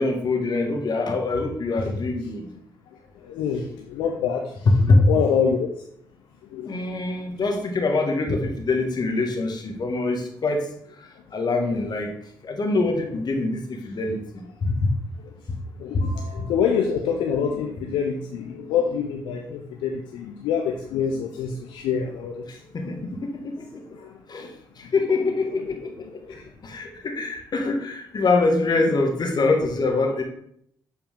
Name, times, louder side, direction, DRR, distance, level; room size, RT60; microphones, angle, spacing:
voice 1, 0.0-2.5 4.6-5.0 6.6-10.7 11.3-12.1 12.4-14.2 14.6-14.9 22.7-23.7 24.3-24.5 24.9-25.8 26.6-30.2, left 3 dB, 55° left, 3 dB, 1.5 m, -23 dB
voice 2, 3.2-4.7 4.9-5.7 6.5-6.9 15.8-22.4 22.8-23.1 23.6-23.7 23.9-24.2 24.8-24.9 26.3-26.5, left 7 dB, 80° left, 2 dB, 0.6 m, -26 dB
7.6 x 4.4 x 3.6 m, 0.69 s
hypercardioid pair, 40°, 9 cm